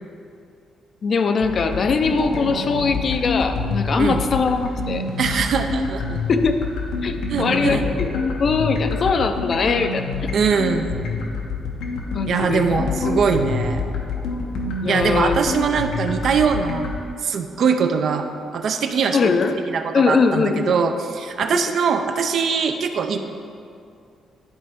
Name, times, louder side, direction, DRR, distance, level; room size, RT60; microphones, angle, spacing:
voice 1, 1.0-5.1 6.3-6.6 7.0-8.1 8.4-10.3 12.1-12.6 14.8-15.4 19.1-19.6 19.9-20.8 21.5-21.7, left 4 dB, 50° left, 7 dB, 0.5 m, -21 dB
sound 1, 1.4-16.9, left 3 dB, 90° left, 0.9 m, -27 dB
voice 2, 5.2-6.2 7.3-7.8 10.3-11.0 12.3-13.8 14.9-16.9 17.2-18.3 18.5-19.3 19.7-23.2, right 6 dB, 60° right, 6 dB, 0.5 m, -22 dB
10.5 x 4.2 x 3.6 m, 2.4 s
cardioid pair, 90°, 0 cm